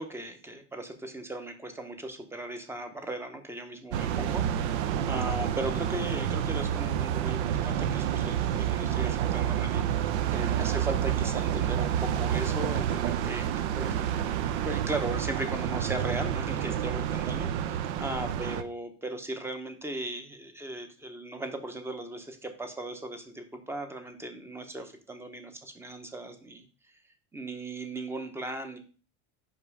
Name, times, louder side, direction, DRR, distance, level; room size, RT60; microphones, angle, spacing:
voice 1, 0.0-14.2 14.6-27.0 27.3-28.8, right 1 dB, 5° right, 6 dB, 0.7 m, -37 dB
sound 1, 3.9-18.6, right 10 dB, 75° right, 0.7 m, -29 dB
5.4 x 5.4 x 4.7 m, 0.39 s
supercardioid pair, 150°, 34 cm